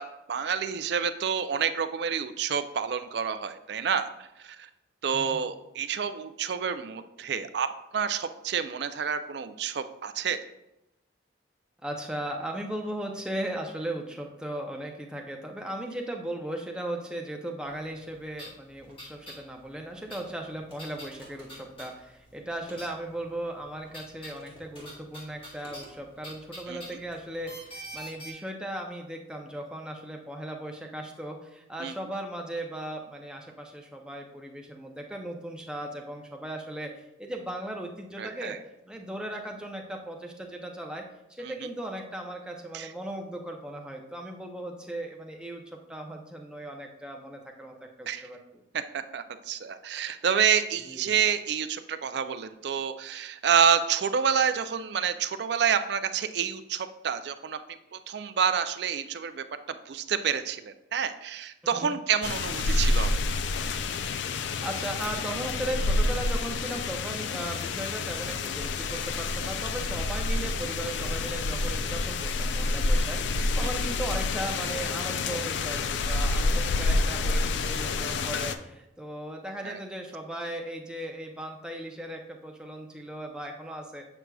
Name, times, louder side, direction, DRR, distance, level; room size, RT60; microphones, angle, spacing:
voice 1, 0.0-4.1 4.4-4.7 5.0-7.7 7.9-10.4 26.7-26.8 31.8-31.9 38.2-38.6 41.4-41.7 42.7-42.9 48.1-48.3 48.7-63.3 73.6-73.7 79.6-79.8, right 7 dB, 60° right, 10 dB, 0.4 m, -28 dB
voice 2, 11.8-36.9 37.2-38.6 38.9-41.0 41.3-45.6 45.9-48.4 50.9-51.1 61.7-61.9 64.3-84.0, right 1 dB, 5° right, 1 dB, 0.6 m, -37 dB
sound 1, 17.9-18.0 18.3-19.4 19.7-22.3 22.6-23.2 23.6-28.3, right 1 dB, 30° left, 1.6 m, -45 dB
sound 2, 62.2-78.5, left 3 dB, 65° left, 0.4 m, -28 dB
7.8 x 5.9 x 2.3 m, 0.92 s
head